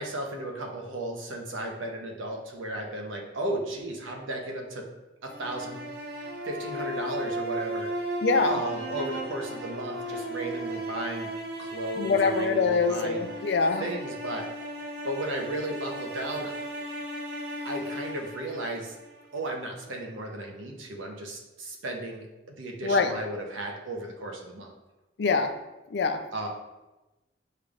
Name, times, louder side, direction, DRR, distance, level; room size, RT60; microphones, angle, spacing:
voice 1, 0.0-4.9 5.2-5.8 6.1-11.3 11.6-13.3 13.8-14.5 15.0-16.6 17.6-19.0 19.3-24.7 26.3-26.5, right 1 dB, 85° right, 1 dB, 0.8 m, -35 dB
sound 1, 5.3-19.4, right 1 dB, 55° right, 0.6 m, -35 dB
voice 2, 8.2-8.6 12.0-13.8 22.8-23.1 25.2-25.5 25.9-26.2, left 4 dB, 60° left, 8 dB, 0.4 m, -24 dB
6.7 x 3.3 x 2.4 m, 1.1 s
head